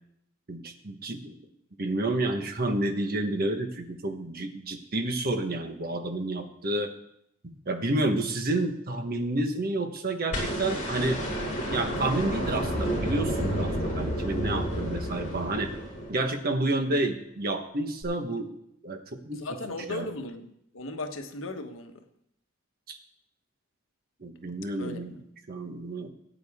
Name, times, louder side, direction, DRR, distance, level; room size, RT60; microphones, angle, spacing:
voice 1, 0.5-1.3 1.8-6.9 7.4-11.2 11.6-15.7 16.1-18.5 18.8-19.4 19.9-20.1 22.9-23.0 24.2-25.1 25.5-26.1, right 2 dB, 50° right, 1.3 m, -30 dB
sound 1, 10.3-16.5 18.0-18.1, equal, 40° left, 5.1 m, -30 dB
voice 2, 19.3-22.0 24.8-25.2, left 2 dB, 75° left, 1.2 m, -37 dB
19.0 x 9.0 x 3.7 m
head